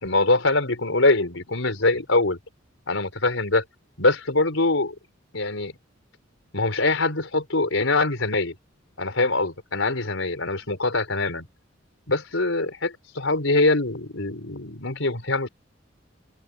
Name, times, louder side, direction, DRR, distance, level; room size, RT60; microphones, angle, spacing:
voice 1, 0.0-2.4 2.9-3.6 4.0-4.9 5.3-5.7 6.5-8.5 9.0-11.5 12.1-15.5, left 2 dB, 90° left, 4.3 m, -23 dB
open air
head